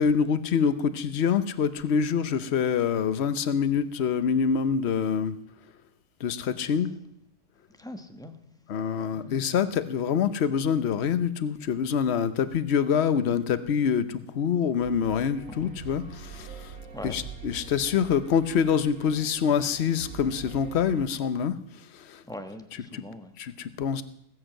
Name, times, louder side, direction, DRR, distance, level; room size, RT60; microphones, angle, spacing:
voice 1, 0.0-5.3 6.2-6.9 8.7-16.5 17.0-21.5 22.1-22.2 22.9-23.0 23.4-24.0, left 7 dB, 50° left, 13 dB, 0.9 m, -25 dB
voice 2, 7.8-8.3 9.1-9.3 15.5-15.7 16.9-17.2 22.2-23.3, left 1 dB, 5° left, 6 dB, 1.0 m, -41 dB
sound 1, 14.8-21.0, right 5 dB, 70° right, 2.9 m, -44 dB
19.0 x 8.2 x 7.6 m, 0.76 s
omnidirectional pair, 1.7 m